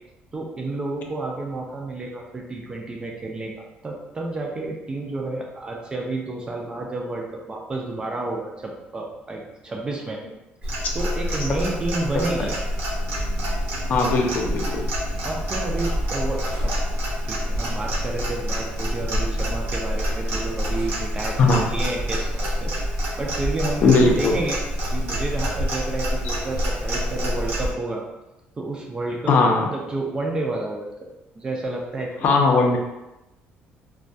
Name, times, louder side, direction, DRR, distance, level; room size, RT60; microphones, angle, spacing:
voice 1, 0.3-10.2 10.6-12.5 15.2-16.7 17.2-22.7 23.2-24.6 24.9-28.0 28.6-29.3 29.6-30.9 31.4-32.3, right 2 dB, 20° right, 0 dB, 0.3 m, -30 dB
Clock, 10.6-27.7, equal, 80° right, 0.8 m, -27 dB
voice 2, 13.9-14.8 21.4-21.7 23.8-24.3 29.3-29.6 32.2-32.8, left 3 dB, 50° left, 1 dB, 0.4 m, -18 dB
2.2 x 2.2 x 2.6 m, 0.96 s
cardioid pair, 140°, 4 cm